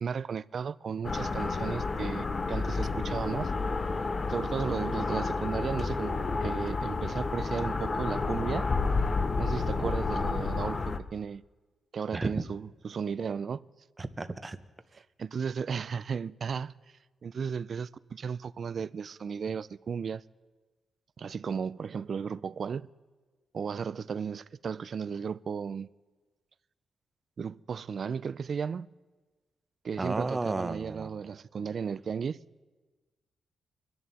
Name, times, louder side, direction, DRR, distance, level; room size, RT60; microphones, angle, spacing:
voice 1, 0.0-3.5 4.3-8.7 9.4-11.4 11.9-13.6 14.9-16.7 17.2-20.2 21.2-22.9 23.5-25.9 27.4-28.9 29.8-32.4, right 6 dB, 50° right, 0.4 m, -35 dB
sound 1, 1.0-11.0, left 3 dB, 35° left, 0.8 m, -30 dB
voice 2, 14.0-14.6 30.0-31.1, right 3 dB, 25° right, 0.8 m, -33 dB
25.0 x 11.0 x 4.2 m
cardioid pair, 110°, 0 cm